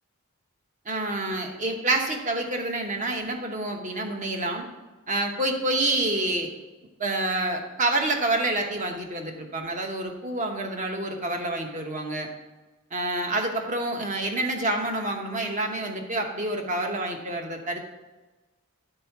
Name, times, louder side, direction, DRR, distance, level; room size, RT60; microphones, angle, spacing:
voice 1, 0.8-4.7 5.1-6.5 7.0-12.3 12.9-17.9, right 2 dB, 35° right, 3 dB, 1.0 m, -28 dB
9.9 x 4.4 x 5.8 m, 1.2 s
head